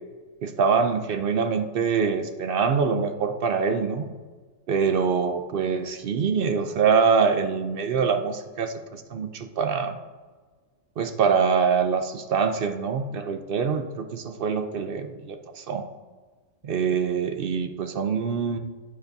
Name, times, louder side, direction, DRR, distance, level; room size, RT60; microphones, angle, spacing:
voice 1, 0.4-4.1 4.7-10.0 11.0-15.9 16.6-18.6, right 6 dB, 60° right, 7 dB, 0.6 m, -24 dB
9.2 x 6.6 x 2.7 m, 1.4 s
omnidirectional pair, 1.4 m